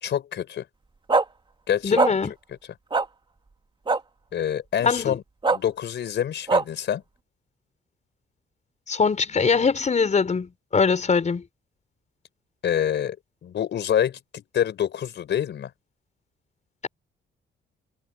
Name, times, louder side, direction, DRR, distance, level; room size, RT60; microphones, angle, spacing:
voice 1, 0.0-0.6 1.7-2.0 4.3-5.2 5.5-7.0 12.6-13.2 13.4-15.7, left 9 dB, 65° left, 4.5 m, -26 dB
sound 1, 1.1-1.2 2.0-2.1 2.9-3.0 3.9-4.0 5.4-5.6 6.5-6.6, right 3 dB, 25° right, 1.9 m, -19 dB
voice 2, 1.8-2.3 4.8-5.2 8.9-11.4, left 5 dB, 35° left, 5.4 m, -22 dB
cardioid pair, 90°, 20 cm